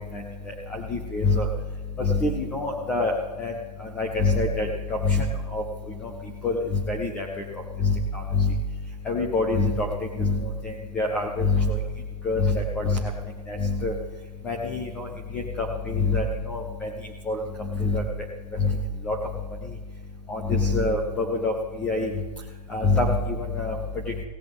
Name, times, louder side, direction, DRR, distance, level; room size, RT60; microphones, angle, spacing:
voice 1, 0.7-1.5 2.0-3.5 4.0-4.7 5.0-5.3 5.5-5.6 6.4-6.6 6.9-7.3 7.8-8.5 9.1-9.9 10.2-10.4 10.6-11.8 12.2-13.0 13.5-13.9 14.4-15.1 15.3-16.9 17.3-17.4 17.8-18.0 18.6-18.8 19.1-19.2 20.3-21.5 21.8-22.1 22.7-23.8, left 3 dB, 5° left, 1 dB, 0.4 m, -25 dB
18.0 x 16.5 x 3.6 m, 1.2 s
hypercardioid pair, 165°, 21 cm